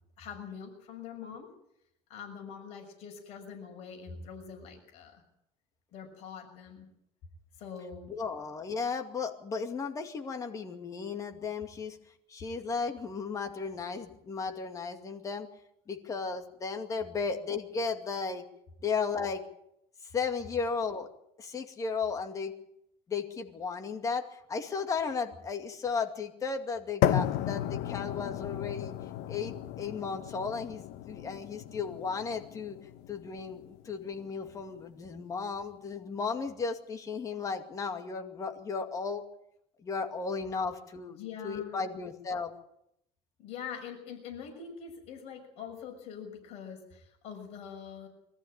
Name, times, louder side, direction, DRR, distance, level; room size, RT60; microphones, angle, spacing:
voice 1, 0.2-1.5 2.1-5.2 5.9-6.9 7.6-8.1 41.1-41.9 43.4-48.1, left 7 dB, 55° left, 3 dB, 6.2 m, -44 dB
voice 2, 8.1-12.0 12.3-15.5 15.9-18.4 18.8-19.4 20.1-21.1 21.4-22.5 23.1-28.9 29.3-32.8 33.1-39.2 39.8-41.2 41.4-42.5, left 5 dB, 25° left, 5 dB, 2.4 m, -35 dB
sound 1, 27.0-35.0, left 12 dB, 70° left, 1.2 m, -34 dB
23.5 x 14.5 x 9.0 m, 0.79 s
cardioid pair, 150°, 13 cm